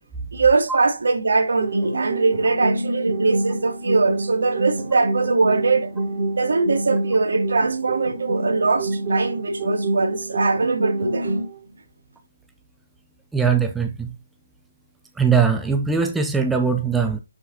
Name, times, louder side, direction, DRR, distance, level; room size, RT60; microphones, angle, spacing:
voice 1, 0.3-5.9 6.4-11.4, right 3 dB, 65° right, 2.5 m, -21 dB
sound 1, 1.6-11.6, right 2 dB, 20° right, 4.3 m, -27 dB
voice 2, 13.3-14.1 15.2-17.2, right 6 dB, 5° right, 0.6 m, -20 dB
7.9 x 7.0 x 2.8 m
figure-of-eight pair, 155°, 0 cm